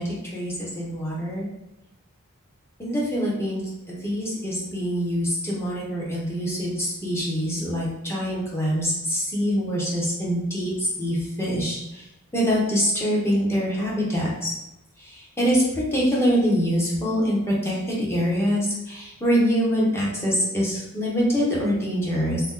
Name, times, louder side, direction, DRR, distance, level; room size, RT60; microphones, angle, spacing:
voice 1, 0.0-1.5 2.8-3.6 3.9-12.0 12.3-14.5 15.0-22.4, equal, 10° left, -5 dB, 0.9 m, -24 dB
2.9 x 2.2 x 3.6 m, 0.93 s
head